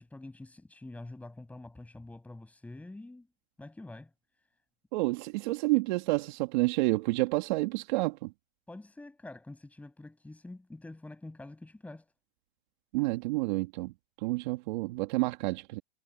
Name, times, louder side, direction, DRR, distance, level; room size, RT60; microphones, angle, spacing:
voice 1, 0.0-3.3 3.6-4.1 8.7-12.1, left 2 dB, 5° left, 7.8 m, -46 dB
voice 2, 4.9-8.3 12.9-13.9 14.2-15.8, right 22 dB, 45° right, 2.2 m, -29 dB
hypercardioid pair, 145°, 32 cm